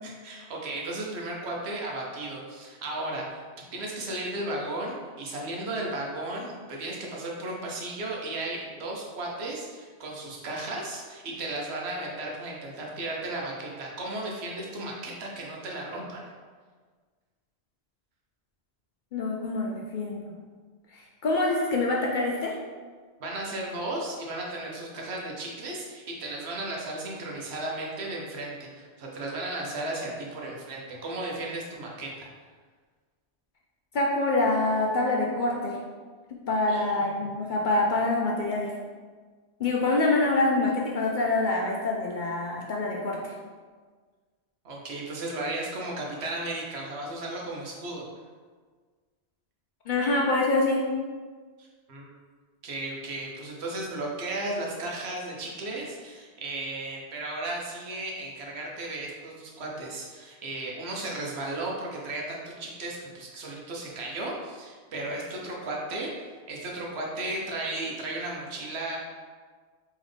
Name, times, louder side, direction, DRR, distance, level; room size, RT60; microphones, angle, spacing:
voice 1, 0.0-3.4 3.7-16.3 23.2-32.3 36.7-37.2 44.6-48.0 51.6-52.1 52.6-69.0, right 2 dB, 70° right, -2 dB, 1.0 m, -35 dB
voice 2, 19.1-20.3 20.9-22.5 33.9-35.8 36.3-38.7 39.6-43.3 49.9-50.8, left 2 dB, 60° left, -2 dB, 0.6 m, -26 dB
3.8 x 3.1 x 3.3 m, 1.5 s
omnidirectional pair, 1.1 m